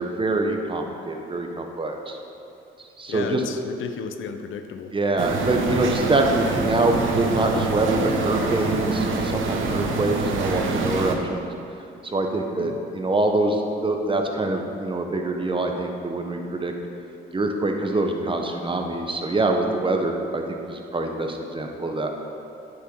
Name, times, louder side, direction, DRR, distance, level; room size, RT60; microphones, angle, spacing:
voice 1, 0.0-2.2 3.0-3.4 4.9-11.5 12.0-16.7 17.3-22.1, right 2 dB, 25° right, 3 dB, 1.2 m, -25 dB
voice 2, 3.1-5.0 12.4-12.8, left 6 dB, 70° left, 7 dB, 0.7 m, -34 dB
sound 1, 5.2-11.1, right 3 dB, 70° right, 1.2 m, -26 dB
9.3 x 6.4 x 6.2 m, 2.7 s
cardioid pair, 80°, 21 cm